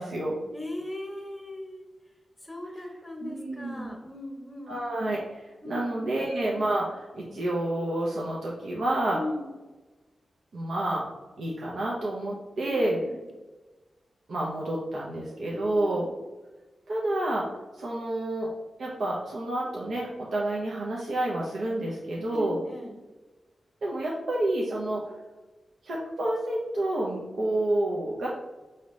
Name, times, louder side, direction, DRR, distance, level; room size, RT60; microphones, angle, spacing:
voice 1, 0.0-0.4 3.2-3.9 4.7-9.2 10.5-11.1 11.4-13.0 14.3-16.1 16.9-17.4 17.8-18.5 18.8-22.6 23.8-25.0 25.8-28.3, right 1 dB, 75° right, -4 dB, 0.7 m, -29 dB
voice 2, 0.5-1.9 2.4-4.8 5.6-6.2 9.1-9.5 12.6-13.2 15.5-16.1 22.3-23.0, left 1 dB, 10° left, 1 dB, 1.0 m, -38 dB
4.9 x 2.9 x 3.1 m, 1.2 s
cardioid pair, 80°, 0 cm